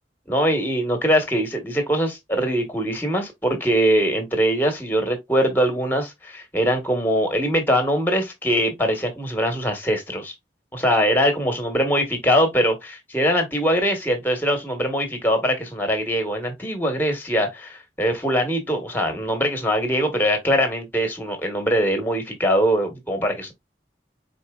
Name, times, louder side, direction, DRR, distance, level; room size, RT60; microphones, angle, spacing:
voice 1, 0.3-10.3 10.7-23.5, equal, 10° left, 1.1 m, -22 dB
4.3 x 4.2 x 2.3 m
head